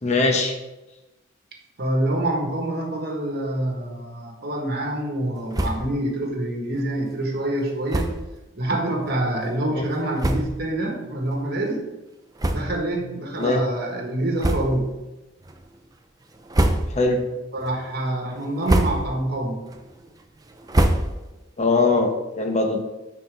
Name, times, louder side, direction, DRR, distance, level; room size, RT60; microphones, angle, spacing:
voice 1, 0.0-0.6 9.8-9.9 13.4-13.6 16.9-17.2 21.6-22.8, left 3 dB, 35° left, 4 dB, 0.9 m, -21 dB
voice 2, 1.8-8.1 8.5-11.8 12.5-14.9 17.5-19.6, right 1 dB, 55° right, 1 dB, 1.3 m, -26 dB
sound 1, 5.5-6.0 6.3-6.4 6.7-6.9 7.9-8.3 9.0-9.1 9.8-9.9 10.2-10.7 11.3-11.4 12.3-13.0 13.4-13.5 14.4-15.0 15.4-15.8 16.3-17.2 17.6-18.0 18.4-19.3 19.6-21.5, right 1 dB, 20° right, 0.5 m, -25 dB
9.8 x 4.1 x 3.4 m, 1.0 s
head